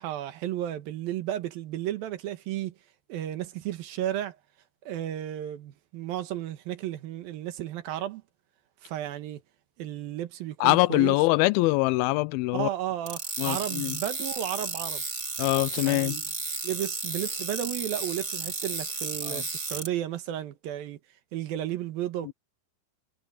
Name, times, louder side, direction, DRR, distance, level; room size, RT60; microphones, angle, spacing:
voice 1, 0.0-2.7 3.1-4.4 4.9-8.2 8.8-9.4 9.8-11.2 12.5-15.0 15.8-16.3 16.6-21.0 21.3-22.3, right 12 dB, 80° right, 3.1 m, -33 dB
voice 2, 10.6-12.7 13.4-14.0 15.4-16.2 19.2-19.4 22.3-22.4, left 21 dB, 90° left, 2.4 m, -24 dB
sound 1, 13.1-19.9, right 3 dB, 25° right, 2.0 m, -33 dB
omnidirectional pair, 4.2 m